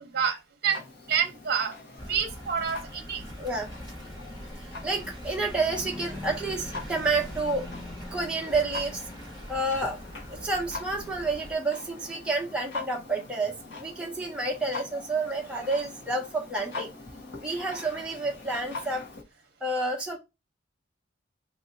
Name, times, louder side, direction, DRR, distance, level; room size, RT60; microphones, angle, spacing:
Clock, 0.7-19.2, left 3 dB, 60° left, 1.2 m, -43 dB
voice 1, 1.1-1.7 2.1-3.2, right 7 dB, 50° right, 0.9 m, -27 dB
sound 1, 2.0-11.5, equal, 20° left, 1.5 m, -41 dB
voice 2, 3.4-3.7 4.6-7.6 8.1-9.0 9.5-10.0 10.3-16.9 17.4-19.1 19.6-20.2, right 2 dB, 5° right, 0.8 m, -29 dB
2.8 x 2.7 x 4.4 m
head